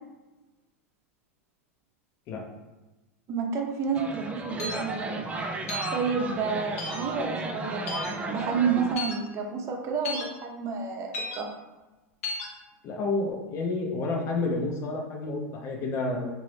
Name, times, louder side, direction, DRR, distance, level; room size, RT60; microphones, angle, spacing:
voice 1, 3.3-5.2 5.9-11.5, right 5 dB, 40° right, 2 dB, 0.7 m, -30 dB
sound 1, 3.9-8.9, right 2 dB, 20° right, 0.3 m, -34 dB
sound 2, 4.6-4.8 5.7-5.9 6.8-7.0 7.9-8.1 9.0-9.2 10.0-10.3 11.1-11.4 12.2-12.5, left 2 dB, 75° left, 0.7 m, -33 dB
voice 2, 12.8-16.3, left 3 dB, 45° left, 0 dB, 0.8 m, -30 dB
2.9 x 2.7 x 3.2 m, 1.1 s
hypercardioid pair, 105°, 8 cm